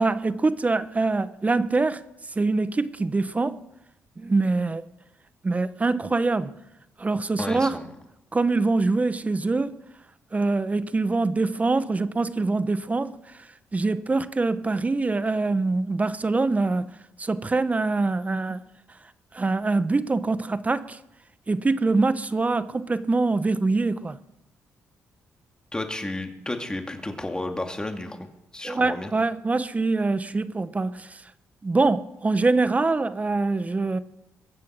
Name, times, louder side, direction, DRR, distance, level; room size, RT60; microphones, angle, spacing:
voice 1, 0.0-2.0 2.4-3.6 4.2-4.8 5.4-6.6 7.0-7.8 8.3-9.8 10.3-13.2 13.7-16.9 17.2-18.6 19.3-21.0 21.5-24.2 28.6-31.2 31.6-34.0, right 3 dB, 25° right, 0.9 m, -24 dB
voice 2, 7.4-7.9 25.7-29.1, left 2 dB, 15° left, 2.2 m, -32 dB
22.5 x 7.6 x 6.2 m
cardioid pair, 75°, 6 cm